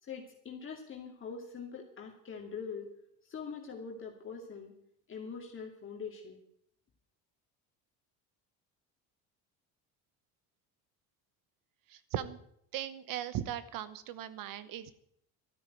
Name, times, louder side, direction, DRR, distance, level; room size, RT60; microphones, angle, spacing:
voice 1, 0.0-2.9 3.2-4.7 5.1-6.4, left 5 dB, 35° left, 0 dB, 2.5 m, -43 dB
voice 2, 11.9-12.4 12.7-14.9, right 11 dB, 65° right, 15 dB, 1.1 m, -38 dB
13.5 x 9.1 x 9.2 m, 0.70 s
cardioid pair, 110°, 36 cm